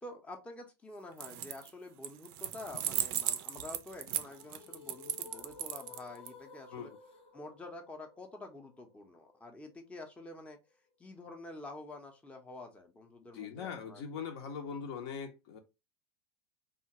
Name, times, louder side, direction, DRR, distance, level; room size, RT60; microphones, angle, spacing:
voice 1, 0.0-6.9 7.3-10.6 11.0-14.2, left 2 dB, 10° left, 0.6 m, -48 dB
sound 1, 1.1-1.7 2.0-6.3, right 12 dB, 55° right, 0.4 m, -36 dB
sound 2, 4.0-10.0, left 5 dB, 85° left, 1.1 m, -55 dB
voice 2, 13.3-15.6, left 6 dB, 65° left, 0.7 m, -41 dB
2.8 x 2.3 x 2.7 m
hypercardioid pair, 110°, 14 cm